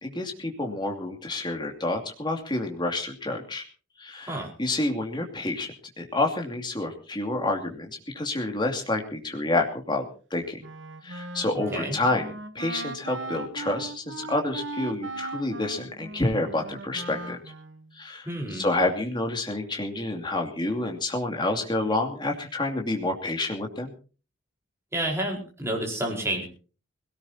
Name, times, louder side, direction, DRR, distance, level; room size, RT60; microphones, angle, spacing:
voice 1, 0.0-3.6 4.0-5.7 6.0-7.9 8.1-10.0 10.3-10.6 11.0-12.3 12.5-17.4 18.0-23.9, left 2 dB, 20° left, 2 dB, 2.6 m, -28 dB
Wind instrument woodwind instrument, 10.6-17.9, right 2 dB, 60° right, 1.2 m, -38 dB
voice 2, 18.3-18.6 24.9-26.4, right 1 dB, 15° right, 0 dB, 4.6 m, -29 dB
22.0 x 17.5 x 2.9 m, 0.37 s
head